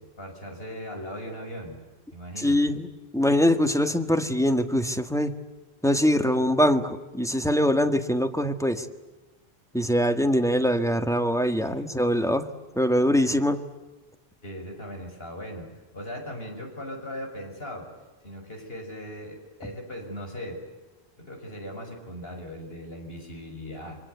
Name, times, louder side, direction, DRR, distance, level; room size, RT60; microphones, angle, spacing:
voice 1, 0.0-1.8 2.1-2.7 11.6-11.9 14.4-17.9 18.2-20.6 21.2-24.0, equal, 70° left, 2 dB, 6.7 m, -39 dB
voice 2, 2.4-2.9 3.1-5.4 5.8-8.9 9.7-12.5 12.7-13.6, equal, 5° left, 8 dB, 1.7 m, -23 dB
29.0 x 25.5 x 8.1 m, 1.1 s
omnidirectional pair, 1.1 m